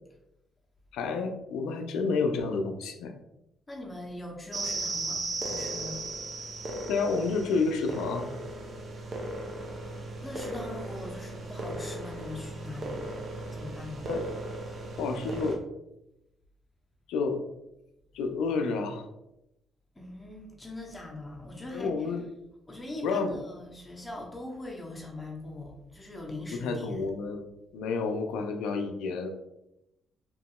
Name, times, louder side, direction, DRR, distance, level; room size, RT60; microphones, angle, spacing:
voice 1, 0.9-3.1 6.9-8.3 14.0-14.3 15.0-15.6 17.1-17.4 18.1-19.1 21.7-22.2 23.0-23.4 26.5-27.4 27.7-29.3, left 4 dB, 80° left, 6 dB, 0.3 m, -30 dB
voice 2, 3.7-6.0 10.2-13.1 13.5-14.1 19.9-22.1 22.7-27.1, left 1 dB, 20° left, 0 dB, 0.7 m, -41 dB
sound 1, 4.5-15.5, right 2 dB, 50° right, 0.5 m, -36 dB
2.9 x 2.7 x 2.3 m, 0.88 s
supercardioid pair, 55°, 0 cm